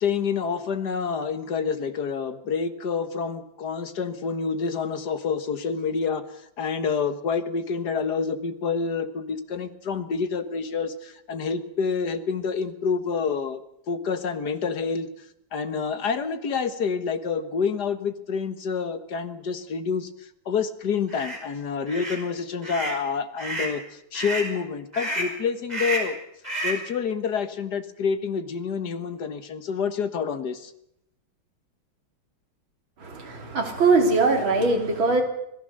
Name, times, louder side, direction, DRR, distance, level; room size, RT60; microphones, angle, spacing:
voice 1, 0.0-6.2 6.6-13.6 13.9-15.1 15.5-20.1 20.5-26.2 26.6-30.7, left 5 dB, 55° left, 10 dB, 1.9 m, -28 dB
sound 1, 21.1-21.4 21.9-22.2 22.6-23.0 23.4-23.8 24.1-24.5 24.9-25.4 25.7-26.2 26.4-26.9, right 2 dB, 20° right, 5.2 m, -30 dB
voice 2, 33.0-35.2, right 3 dB, 75° right, 3 dB, 4.0 m, -21 dB
26.5 x 17.5 x 6.7 m, 0.77 s
omnidirectional pair, 2.2 m